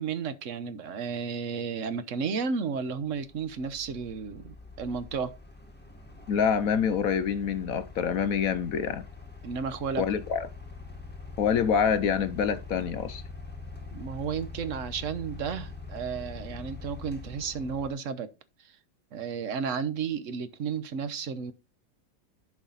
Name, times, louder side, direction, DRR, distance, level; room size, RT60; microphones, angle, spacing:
voice 1, 0.0-5.3 9.4-10.0 13.9-18.3 18.6-18.7 19.1-21.5, right 6 dB, 50° right, 1.1 m, -33 dB
sound 1, 2.1-2.2 2.8-17.9, left 4 dB, 5° left, 1.4 m, -44 dB
voice 2, 6.3-9.0 10.0-10.5 11.4-13.2, left 7 dB, 65° left, 0.9 m, -26 dB
11.0 x 5.9 x 3.9 m
omnidirectional pair, 1.9 m